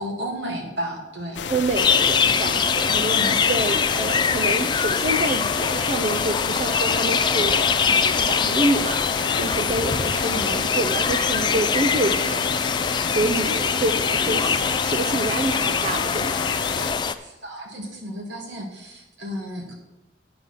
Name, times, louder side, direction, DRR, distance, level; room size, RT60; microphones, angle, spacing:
voice 1, 0.0-1.4 3.0-3.4 10.2-10.7 17.2-19.7, equal, 85° right, 1 dB, 2.2 m, -33 dB
sound 1, 1.3-16.9, left 5 dB, 85° left, 0.7 m, -31 dB
voice 2, 1.5-16.4, right 2 dB, 40° right, 6 dB, 0.4 m, -27 dB
sound 2, 1.7-17.1, left 6 dB, 25° left, 0.3 m, -23 dB
9.1 x 6.2 x 5.7 m, 0.98 s
head